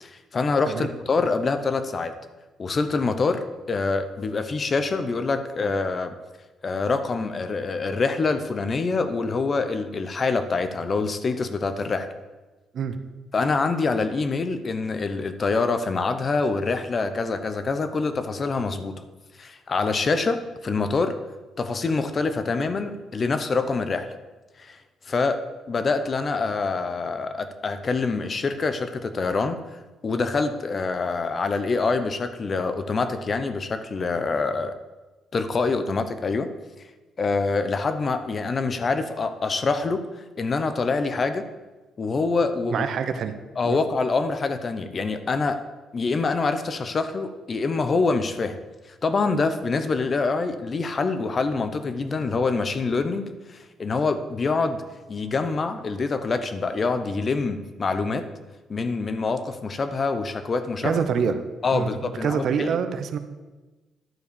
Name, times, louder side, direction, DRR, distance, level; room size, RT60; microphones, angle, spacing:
voice 1, 0.0-2.1 2.6-6.1 6.6-12.1 13.3-18.9 19.4-21.1 21.6-24.1 24.6-24.8 25.1-25.4 25.7-29.6 30.0-34.7 35.3-36.5 37.2-41.5 42.0-42.8 43.6-45.6 45.9-48.6 49.0-54.8 55.1-58.3 58.7-61.0 61.6-62.7, left 4 dB, 40° left, 10 dB, 0.8 m, -25 dB
voice 2, 42.7-43.3 43.6-43.8 60.8-61.3 61.7-63.2, right 6 dB, 65° right, 9 dB, 0.8 m, -26 dB
11.0 x 4.7 x 6.9 m, 1.2 s
cardioid pair, 90°, 0 cm